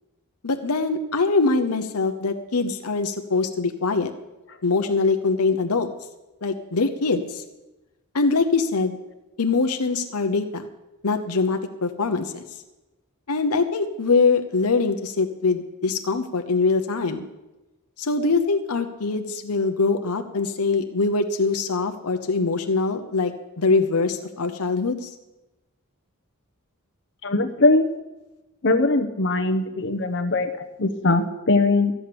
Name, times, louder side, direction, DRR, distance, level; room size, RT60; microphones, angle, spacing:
voice 1, 0.4-4.1 4.6-5.9 6.4-7.4 8.1-9.0 9.4-10.7 11.0-12.4 13.3-17.2 18.0-25.1, left 4 dB, 80° left, 7 dB, 0.9 m, -23 dB
voice 2, 27.2-27.8 28.6-31.9, left 2 dB, 55° left, 7 dB, 1.0 m, -21 dB
13.5 x 8.6 x 6.9 m, 1.0 s
head